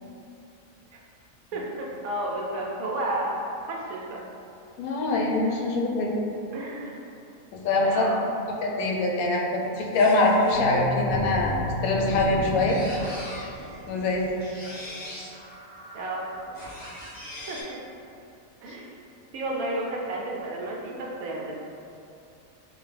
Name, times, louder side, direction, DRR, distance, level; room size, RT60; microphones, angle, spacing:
voice 1, 1.5-3.4 3.7-4.2 6.5-7.0 7.8-8.2 15.9-16.3 17.5-17.6 18.6-18.9 19.3-21.5, right 1 dB, 80° right, -2 dB, 1.1 m, -31 dB
voice 2, 4.8-6.1 7.5-8.1 8.6-11.5 11.8-12.8 13.9-14.3, left 2 dB, 90° left, -1 dB, 1.1 m, -24 dB
sound 1, 9.9-17.6, equal, 10° left, 1.3 m, -35 dB
3.6 x 2.6 x 3.3 m, 2.6 s
omnidirectional pair, 1.5 m